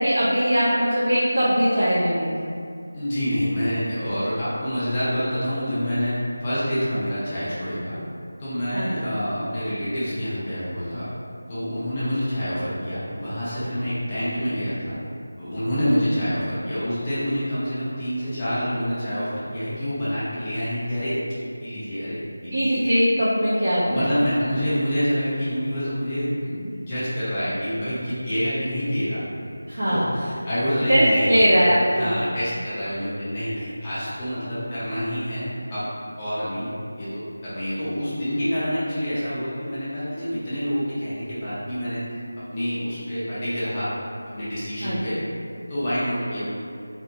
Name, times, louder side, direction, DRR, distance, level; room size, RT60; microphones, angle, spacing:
voice 1, 0.0-2.3 8.7-8.9 22.5-24.1 29.7-30.1 30.9-32.1 44.8-45.2, equal, 55° right, -11 dB, 0.6 m, -20 dB
voice 2, 2.9-8.0 8.4-11.0 11.5-15.0 15.4-21.2 21.6-22.7 23.8-29.2 29.9-31.4 31.9-35.9 36.2-42.1 42.5-43.9 44.3-45.2 45.7-46.5, equal, 15° left, -12 dB, 0.6 m, -27 dB
2.5 x 2.0 x 2.7 m, 2.4 s
figure-of-eight pair, 175°, 0 cm